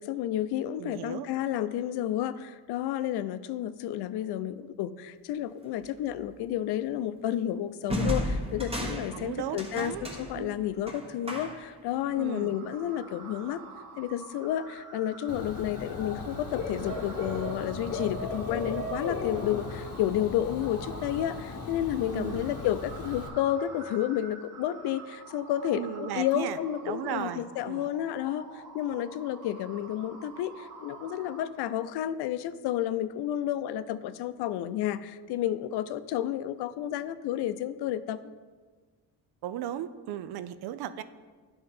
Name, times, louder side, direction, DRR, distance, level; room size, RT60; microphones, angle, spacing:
voice 1, 0.0-13.6 14.0-38.3, left 11 dB, 75° left, 13 dB, 0.5 m, -31 dB
voice 2, 0.8-1.3 9.1-10.1 10.3-10.5 12.2-12.6 22.1-22.6 25.7-26.6 26.8-27.9 39.4-41.0, right 11 dB, 75° right, 13 dB, 0.5 m, -36 dB
sound 1, 5.8-6.1 7.9-11.8, left 1 dB, 15° right, 1.1 m, -34 dB
sound 2, 12.1-31.4, right 4 dB, 50° right, 1.4 m, -48 dB
Dog / Bird, 15.3-23.3, left 3 dB, 35° left, 0.9 m, -36 dB
10.5 x 3.8 x 4.2 m, 1.4 s
cardioid pair, 105°, 39 cm